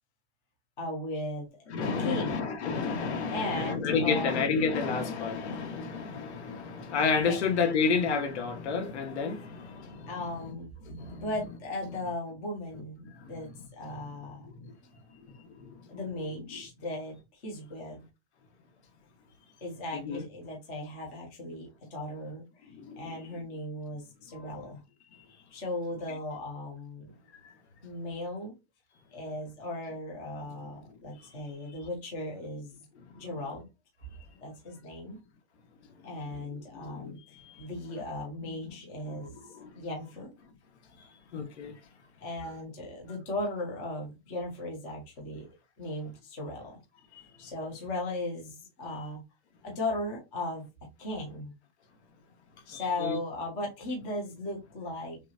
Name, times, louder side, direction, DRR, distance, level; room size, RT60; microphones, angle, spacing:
voice 1, 0.8-2.5 3.3-4.5 7.3-7.4 10.1-10.7 11.2-13.5 13.8-14.4 15.9-18.0 19.6-22.7 23.0-24.8 25.5-27.1 27.8-28.5 29.1-32.8 33.2-33.7 34.4-35.2 36.0-37.2 37.6-39.3 39.7-40.3 42.2-45.5 45.8-46.7 47.4-49.2 49.6-50.7 51.0-51.5 52.7-55.2, left 1 dB, 10° left, 0.3 m, -37 dB
voice 2, 1.7-10.3 10.9-11.2 19.9-20.2 23.0-23.1 36.8-37.1 38.4-38.5 39.1-39.2 39.6-39.7 41.3-41.7 52.7-53.2, left 5 dB, 85° left, 1.5 m, -30 dB
5.8 x 2.3 x 2.7 m
supercardioid pair, 175°, 33 cm